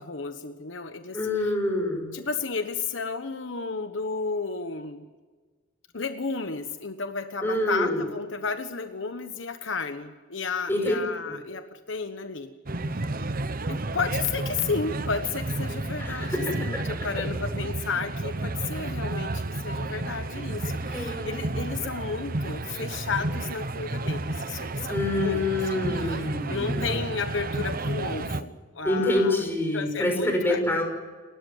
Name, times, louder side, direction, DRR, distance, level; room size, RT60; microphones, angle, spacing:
voice 1, 0.0-1.5 2.1-5.0 5.9-12.5 12.9-13.0 13.7-29.4 29.7-30.6, left 4 dB, 65° left, 8 dB, 1.2 m, -33 dB
voice 2, 1.1-2.2 7.4-8.0 10.7-11.3 16.0-16.4 16.7-16.8 20.9-21.6 24.9-26.9 28.8-30.8, left 1 dB, 10° left, 2 dB, 5.9 m, -26 dB
sound 1, 12.7-28.4, right 2 dB, 45° right, 1.0 m, -31 dB
29.5 x 13.0 x 9.2 m, 1.4 s
head